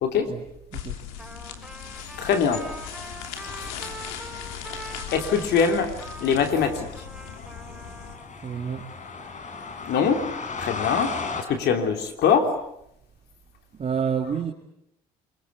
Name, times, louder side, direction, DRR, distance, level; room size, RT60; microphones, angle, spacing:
voice 1, 0.0-0.3 2.2-2.7 5.1-7.1 7.4-7.5 9.9-10.3 10.6-11.2 11.5-12.6, left 6 dB, 60° left, 5 dB, 3.3 m, -23 dB
sound 1, 0.7-8.2, left 9 dB, 80° left, 3.0 m, -39 dB
Trumpet, 1.2-8.3, right 2 dB, ahead, 6.1 m, -43 dB
sound 2, 2.7-11.4, left 4 dB, 40° left, 4.6 m, -38 dB
voice 2, 8.4-8.8 13.7-14.5, right 7 dB, 35° right, 2 dB, 2.5 m, -28 dB
27.0 x 23.5 x 8.3 m, 0.77 s
hypercardioid pair, 65°, 19 cm